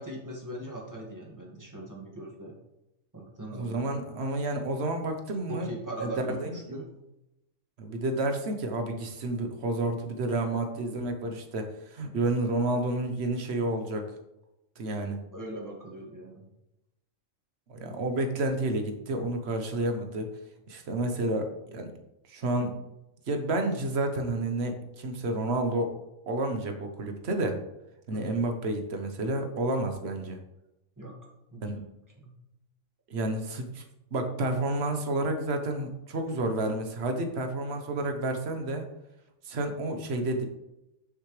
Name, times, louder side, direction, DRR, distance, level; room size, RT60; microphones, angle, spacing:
voice 1, 0.0-2.5 3.1-3.8 5.5-6.9 15.3-16.5 28.1-28.3 31.0-31.1 31.5-31.6 32.2-32.3, right 1 dB, 15° right, -3 dB, 2.0 m, -40 dB
voice 2, 3.5-5.7 6.0-6.6 7.8-14.0 14.8-15.2 17.7-20.3 20.7-21.9 22.3-22.7 23.3-25.9 26.3-27.6 28.1-30.4 31.6-31.8 33.1-33.8 34.1-38.8 39.4-40.5, right 2 dB, 55° right, 5 dB, 1.3 m, -30 dB
9.7 x 6.4 x 3.3 m, 0.90 s
omnidirectional pair, 1.3 m